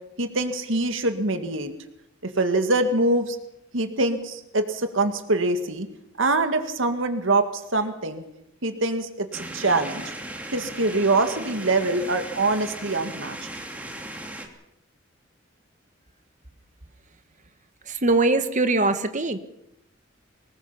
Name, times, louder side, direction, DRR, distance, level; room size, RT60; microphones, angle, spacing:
voice 1, 0.2-1.7 2.2-3.4 3.7-5.9 6.2-8.2 8.6-10.1 10.5-13.4, right 2 dB, 80° right, 7 dB, 2.1 m, -24 dB
sound 1, 9.3-14.5, right 1 dB, 10° right, 2.7 m, -37 dB
voice 2, 17.9-19.4, right 2 dB, 40° right, 9 dB, 1.6 m, -22 dB
24.5 x 19.5 x 5.8 m, 0.82 s
head